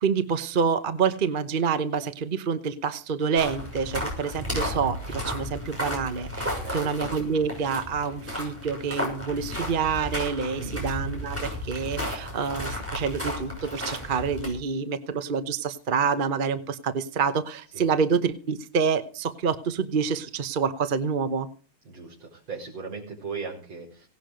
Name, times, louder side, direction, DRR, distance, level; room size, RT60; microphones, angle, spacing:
voice 1, 0.0-21.5, right 6 dB, 50° right, 11 dB, 0.6 m, -27 dB
sound 1, 3.3-14.5, equal, 5° right, 6.3 m, -33 dB
voice 2, 6.6-7.0 10.5-10.7 17.7-17.9 21.9-24.1, right 4 dB, 70° right, -6 dB, 5.6 m, -37 dB
17.5 x 11.5 x 5.1 m, 0.40 s
omnidirectional pair, 2.3 m